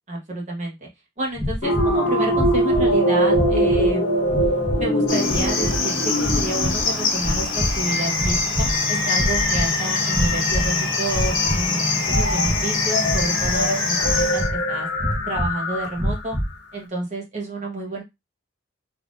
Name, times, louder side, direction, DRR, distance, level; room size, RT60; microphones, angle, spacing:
voice 1, 0.1-0.7 1.2-4.1 4.7-14.9 15.3-16.4 16.7-18.0, right 2 dB, 35° right, -1 dB, 1.1 m, -29 dB
sound 1, 1.4-2.0 2.3-2.9 3.3-3.9 4.3-4.9 5.2-5.8 6.2-6.9 7.2-7.8 8.1-8.8 9.1-9.7 10.1-10.7 11.1-11.7 12.0-12.6 13.0-13.6 14.0-14.6 15.0-15.5 15.9-16.5, equal, 15° right, 0.9 m, -26 dB
sound 2, 1.6-16.2, equal, 60° left, 1.2 m, -24 dB
Cricket, 5.1-14.5, left 4 dB, 80° left, 1.1 m, -25 dB
3.5 x 2.8 x 2.5 m, 0.20 s
head